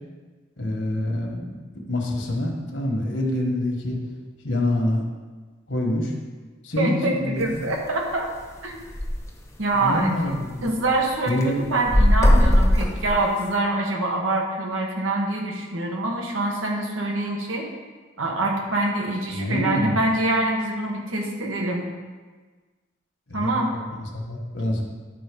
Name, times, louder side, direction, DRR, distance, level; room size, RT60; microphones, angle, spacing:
voice 1, 0.6-1.6 1.9-4.0 4.4-5.0 5.7-6.1 6.6-7.7 9.8-10.7 11.3-11.6 19.3-20.0 23.3-24.8, left 1 dB, 60° left, 1 dB, 1.4 m, -26 dB
voice 2, 6.8-8.3 8.6-8.8 9.6-10.1 10.6-17.7 18.2-21.9 23.3-23.7, right 2 dB, 85° right, 0 dB, 1.5 m, -25 dB
sound 1, 7.4-7.7 8.1-8.2 8.4-8.5 8.8-9.2 9.7-9.8 10.2-11.0 11.3-13.5, left 1 dB, 15° left, 1.0 m, -19 dB
10.5 x 3.9 x 5.3 m, 1.4 s
head